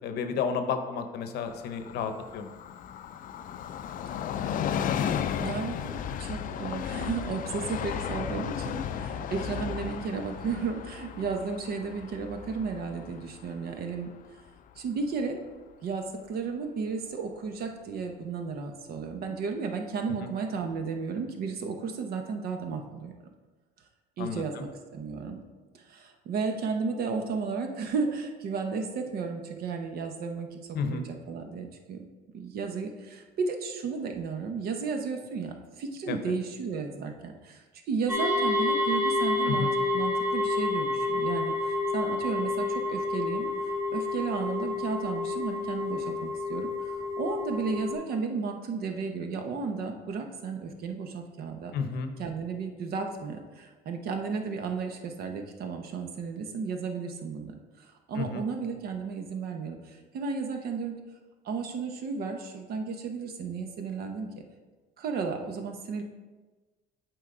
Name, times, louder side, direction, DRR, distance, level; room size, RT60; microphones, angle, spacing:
voice 1, 0.0-2.5 20.2-20.3 24.2-24.7 30.7-31.0 36.1-36.2 39.5-39.7 51.7-52.1 58.1-58.4, left 6 dB, 75° left, 7 dB, 0.7 m, -32 dB
Train, 1.5-14.8 15.1-15.2, left 8 dB, 55° left, 0.4 m, -35 dB
voice 2, 5.4-14.1 14.8-15.4 15.8-23.3 24.2-25.4 25.7-32.1 32.3-37.6 37.9-43.5 43.9-51.7 52.2-61.0 61.4-64.4 65.0-66.0, right 5 dB, 65° right, 5 dB, 1.0 m, -33 dB
sound 1, 38.1-47.9, left 2 dB, 15° right, 1.5 m, -29 dB
8.0 x 4.7 x 3.8 m, 1.3 s
cardioid pair, 110°, 17 cm